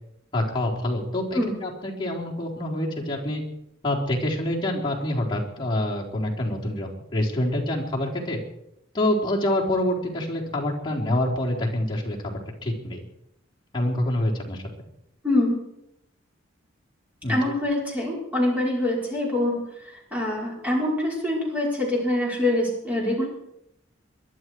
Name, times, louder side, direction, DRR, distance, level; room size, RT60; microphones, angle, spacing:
voice 1, 0.3-3.4 3.8-8.4 8.9-12.3 12.6-13.0 13.7-14.6 17.2-17.4, left 1 dB, 25° left, -4 dB, 4.0 m, -26 dB
voice 2, 15.2-15.6 17.3-19.6 20.1-23.3, left 1 dB, 10° right, -3 dB, 5.3 m, -24 dB
22.5 x 12.0 x 4.7 m, 0.78 s
head